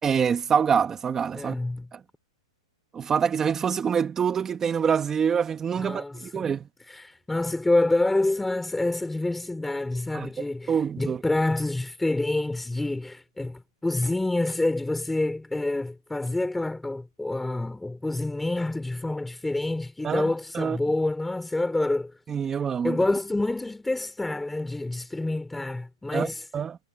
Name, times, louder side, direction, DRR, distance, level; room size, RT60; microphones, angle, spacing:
voice 1, 0.0-1.6 1.9-2.0 2.9-6.7 10.1-10.3 10.7-11.2 20.0-20.3 20.5-20.8 22.3-23.0 26.1-26.8, right 7 dB, 15° right, 2.1 m, -25 dB
voice 2, 1.3-1.9 5.8-6.5 6.9-22.1 22.8-26.4, left 2 dB, 5° left, 4.2 m, -27 dB
hypercardioid pair, 155°, 3 cm